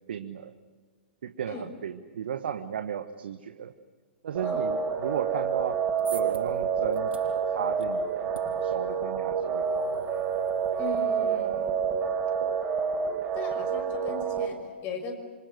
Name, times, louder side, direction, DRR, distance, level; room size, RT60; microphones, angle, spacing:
voice 1, 0.1-0.5 1.2-3.7 4.2-5.8 6.1-8.3 8.6-10.0 12.4-12.6, right 8 dB, 65° right, 9 dB, 1.3 m, -35 dB
sound 1, 4.3-14.5, right 6 dB, 25° right, 4.9 m, -28 dB
sound 2, 5.6-12.0, right 4 dB, 85° right, 7.0 m, -50 dB
voice 2, 10.8-11.7 13.3-15.1, left 5 dB, 35° left, 6 dB, 5.9 m, -38 dB
27.0 x 25.5 x 7.9 m, 1.5 s
figure-of-eight pair, 110°, 6 cm